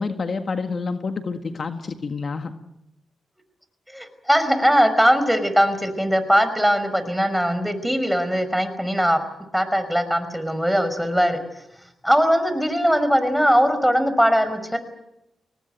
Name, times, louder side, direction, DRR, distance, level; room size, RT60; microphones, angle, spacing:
voice 1, 0.0-2.5, left 4 dB, 55° left, 7 dB, 1.7 m, -28 dB
voice 2, 3.9-9.2 9.5-11.4 12.0-14.8, equal, ahead, 10 dB, 5.5 m, -20 dB
24.5 x 19.0 x 9.2 m, 0.88 s
supercardioid pair, 45°, 0 cm